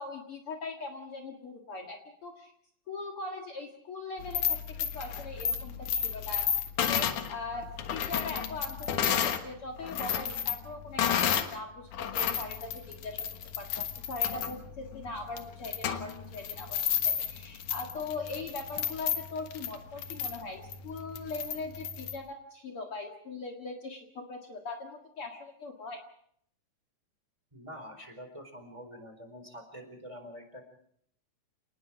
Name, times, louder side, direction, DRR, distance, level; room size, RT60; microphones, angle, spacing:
voice 1, 0.0-2.5 2.9-13.2 13.6-26.0, left 3 dB, 50° left, 3 dB, 2.5 m, -41 dB
sound 1, 4.2-9.4 9.8-11.6 11.9-22.2, left 9 dB, 80° left, 2.9 m, -32 dB
voice 2, 27.5-30.6, equal, 10° right, 6 dB, 4.2 m, -46 dB
29.5 x 19.5 x 4.9 m, 0.66 s
omnidirectional pair, 3.4 m